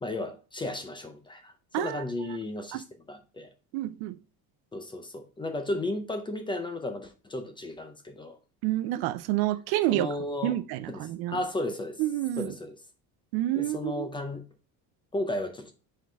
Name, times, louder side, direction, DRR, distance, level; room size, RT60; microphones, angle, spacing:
voice 1, 0.0-3.5 4.7-8.4 9.9-10.6 10.9-12.0 12.4-12.8 13.6-14.4 15.1-15.7, left 2 dB, 15° left, 0.5 m, -34 dB
voice 2, 3.7-4.2 8.6-10.1 10.4-11.4 12.0-12.5 13.3-14.1, right 15 dB, 75° right, 0.6 m, -28 dB
5.2 x 3.8 x 5.5 m
cardioid pair, 170°, 38 cm